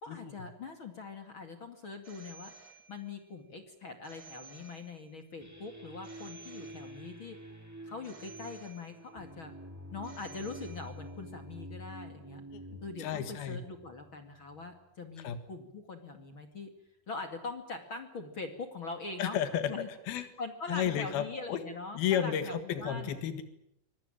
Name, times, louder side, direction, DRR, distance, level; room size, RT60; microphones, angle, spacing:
voice 1, 0.0-7.4 7.9-9.5 9.9-12.4 12.8-16.7 17.1-19.4 19.7-19.9 20.2-23.2, left 3 dB, 40° left, 6 dB, 2.5 m, -43 dB
Telephone, 2.0-3.3 4.0-5.3 6.0-7.3 8.0-9.3 10.0-11.3, right 5 dB, 70° right, 7.2 m, -55 dB
sound 1, 5.4-14.8, equal, 5° right, 2.7 m, -48 dB
voice 2, 12.5-13.6 15.2-15.4 19.2-19.7 20.1-20.2 20.7-21.6 21.9-23.4, left 9 dB, 85° left, 10 dB, 3.6 m, -32 dB
25.0 x 19.0 x 9.0 m, 0.79 s
omnidirectional pair, 4.2 m